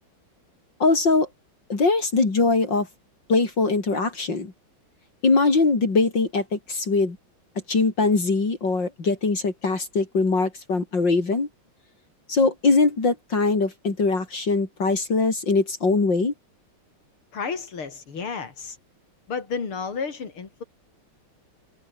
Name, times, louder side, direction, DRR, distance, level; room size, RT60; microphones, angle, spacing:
voice 1, 0.8-1.3 1.7-2.9 3.3-4.5 5.2-7.2 7.7-11.5 12.3-16.3, left 3 dB, 55° left, 4.5 m, -22 dB
voice 2, 17.3-18.8 19.3-20.6, left 5 dB, 85° left, 4.0 m, -32 dB
omnidirectional pair, 2.3 m